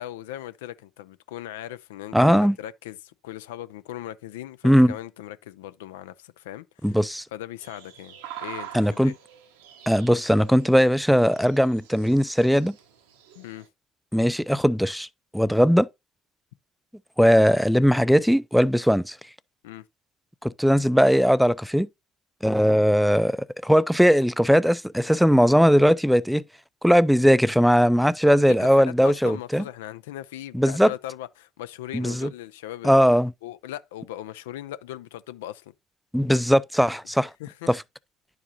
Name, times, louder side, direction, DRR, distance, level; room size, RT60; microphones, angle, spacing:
voice 1, 0.0-7.0 7.3-9.1 13.4-13.7 19.6-19.8 28.2-33.1 33.4-35.7 37.4-37.8, left 13 dB, 80° left, 0.3 m, -38 dB
voice 2, 2.1-2.6 4.6-4.9 6.8-7.2 8.7-9.1 9.9-12.7 14.1-15.1 15.3-15.9 17.2-19.2 20.4-21.9 22.4-23.4 23.6-26.4 26.8-29.6 30.5-30.9 31.9-32.3 32.8-33.3 36.1-37.3 37.7-37.8, equal, ahead, 0.4 m, -19 dB
sound 1, 7.6-13.7, right 10 dB, 80° right, 0.9 m, -45 dB
10.5 x 4.7 x 2.8 m
hypercardioid pair, 55°, 0 cm